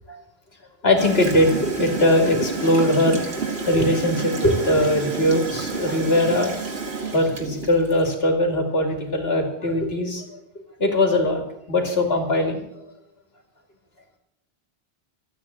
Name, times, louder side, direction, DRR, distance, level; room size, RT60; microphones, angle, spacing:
voice 1, 0.8-3.2 3.7-6.5 7.1-10.4 10.8-11.4 11.7-12.8, left 1 dB, 70° left, 3 dB, 2.9 m, -21 dB
Gurgling / Toilet flush, 1.0-8.1, right 4 dB, 80° right, 2.4 m, -29 dB
14.0 x 9.1 x 8.6 m, 0.83 s
omnidirectional pair, 1.1 m